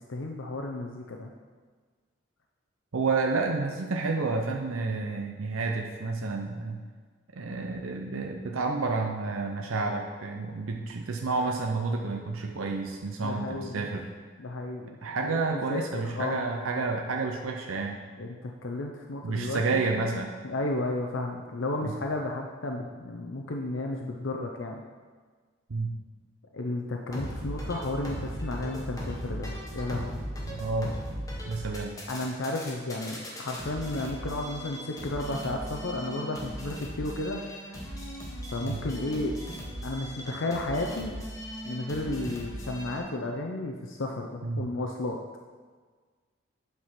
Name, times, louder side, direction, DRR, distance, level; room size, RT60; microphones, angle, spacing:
voice 1, 0.0-1.3 13.2-13.9 14.4-16.8 18.2-20.0 20.4-24.8 26.5-30.2 32.1-37.4 38.5-39.4 39.8-41.2 41.6-45.2, left 2 dB, 70° left, 1 dB, 0.6 m, -33 dB
voice 2, 2.9-6.8 7.4-14.1 15.0-18.0 19.2-20.4 21.8-21.9 25.7-26.0 30.5-31.0 31.5-32.0 38.6-38.8 44.4-44.7, right 3 dB, 85° right, 2 dB, 0.7 m, -30 dB
sound 1, 27.1-43.0, equal, 15° left, 1.2 m, -38 dB
8.6 x 4.8 x 5.8 m, 1.5 s
head